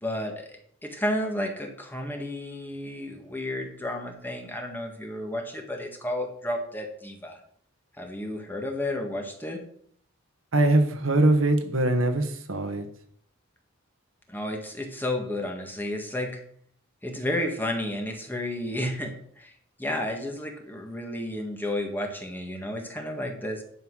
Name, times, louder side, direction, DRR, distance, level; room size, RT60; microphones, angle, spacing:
voice 1, 0.0-7.4 8.0-9.6 14.3-16.4 17.0-19.5 19.8-23.6, left 1 dB, 10° left, 1.6 m, -32 dB
voice 2, 10.5-12.9, right 2 dB, 70° right, 1.4 m, -22 dB
11.0 x 5.7 x 6.3 m
head